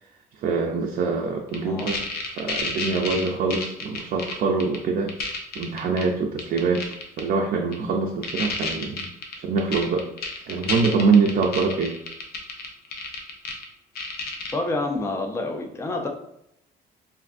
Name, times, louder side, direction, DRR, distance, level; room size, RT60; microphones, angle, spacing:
voice 1, 0.4-5.1 5.6-6.8 7.2-9.1 9.4-10.1 10.5-11.9, right 4 dB, 55° right, 0 dB, 0.4 m, -24 dB
sound 1, 1.5-4.3 4.6-4.8 5.1-6.0 6.4-7.2 7.7-7.8 8.2-13.6 14.0-14.5, left 4 dB, 65° left, 0.7 m, -30 dB
voice 2, 14.5-16.1, left 2 dB, 15° left, 3 dB, 0.4 m, -28 dB
3.2 x 2.6 x 2.5 m, 0.75 s
cardioid pair, 110°, 17 cm